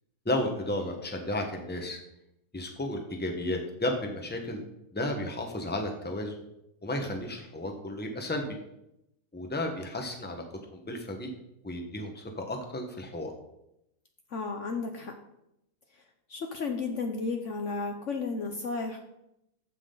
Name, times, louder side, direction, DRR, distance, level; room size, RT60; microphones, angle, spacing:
voice 1, 0.2-2.0 2.5-4.6 4.9-6.4 6.8-8.6 9.3-10.4 10.7-11.3 11.6-13.3, left 1 dB, 5° left, 3 dB, 1.1 m, -33 dB
voice 2, 14.3-15.2 16.3-19.0, left 4 dB, 55° left, 4 dB, 1.1 m, -33 dB
14.5 x 6.1 x 3.9 m, 0.83 s
omnidirectional pair, 1.7 m